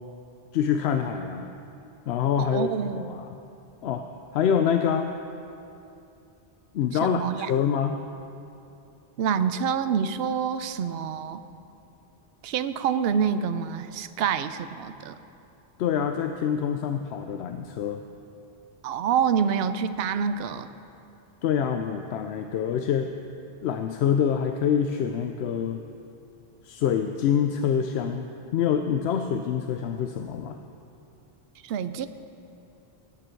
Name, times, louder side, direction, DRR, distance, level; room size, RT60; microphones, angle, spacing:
voice 1, 0.5-1.5 2.1-3.3 3.8-4.0 4.3-5.1 6.7-8.0 15.8-18.0 21.4-23.1 23.6-25.9 26.6-30.6, left 8 dB, 90° left, 6 dB, 0.8 m, -26 dB
voice 2, 2.4-3.2 7.0-7.5 9.2-11.4 12.4-15.2 18.8-20.7 31.6-32.1, right 7 dB, 75° right, 11 dB, 0.8 m, -27 dB
17.0 x 9.3 x 4.5 m, 2.7 s
omnidirectional pair, 1.0 m